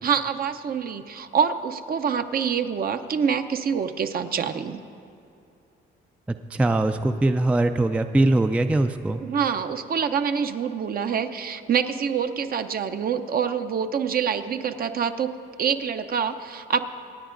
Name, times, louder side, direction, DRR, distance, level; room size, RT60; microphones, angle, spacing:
voice 1, 0.0-4.8 9.2-15.3 15.6-16.8, right 7 dB, 50° right, 8 dB, 0.6 m, -26 dB
voice 2, 6.3-9.2, right 2 dB, 5° right, 8 dB, 0.3 m, -22 dB
26.0 x 9.3 x 2.5 m, 2.6 s
cardioid pair, 90°, 20 cm